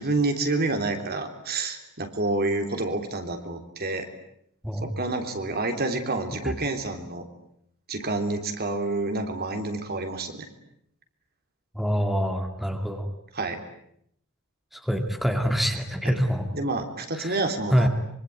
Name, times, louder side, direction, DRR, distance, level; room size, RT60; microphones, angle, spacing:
voice 1, 0.0-4.1 4.8-7.3 7.9-10.5 13.4-13.6 16.5-17.9, right 2 dB, 45° right, 6 dB, 3.5 m, -28 dB
voice 2, 11.7-13.1 14.7-16.5 17.1-17.4 17.7-17.9, equal, ahead, 5 dB, 2.4 m, -25 dB
25.5 x 24.5 x 9.5 m, 0.72 s
head